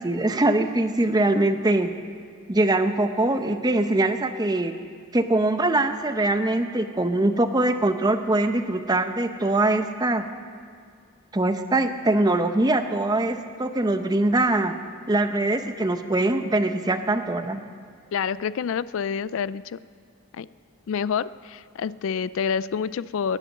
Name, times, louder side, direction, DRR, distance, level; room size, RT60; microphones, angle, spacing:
voice 1, 0.0-1.9 2.5-4.7 5.1-10.3 11.3-14.7 15.1-17.6, right 2 dB, 20° right, 8 dB, 0.7 m, -22 dB
voice 2, 18.1-19.8 20.3-20.5 20.9-23.4, left 7 dB, 65° left, 17 dB, 0.3 m, -28 dB
18.5 x 10.5 x 6.6 m, 2.2 s
head